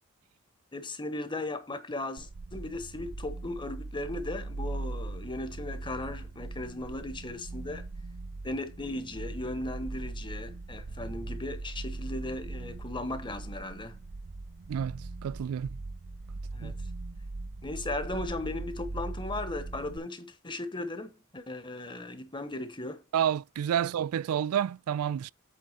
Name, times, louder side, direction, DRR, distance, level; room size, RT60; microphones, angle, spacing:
voice 1, 0.7-7.9 8.4-14.0 16.5-16.8 17.6-23.0, left 2 dB, 20° left, 1.2 m, -37 dB
sound 1, 2.2-20.0, right 2 dB, 50° right, 0.6 m, -40 dB
voice 2, 14.7-15.8 16.6-16.7 23.1-25.3, right 9 dB, 90° right, 0.3 m, -30 dB
8.4 x 3.7 x 5.6 m
head